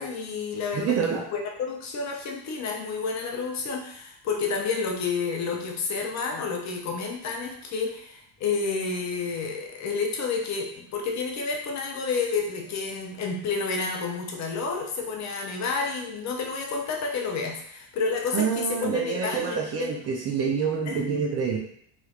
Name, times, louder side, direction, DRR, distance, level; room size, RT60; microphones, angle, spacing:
voice 1, 0.0-1.0 1.3-19.9 20.9-21.0, left 4 dB, 35° left, 1 dB, 0.5 m, -30 dB
voice 2, 0.7-1.3 18.3-21.6, right 6 dB, 35° right, -1 dB, 0.4 m, -27 dB
3.3 x 3.0 x 2.3 m, 0.67 s
cardioid pair, 140°, 48 cm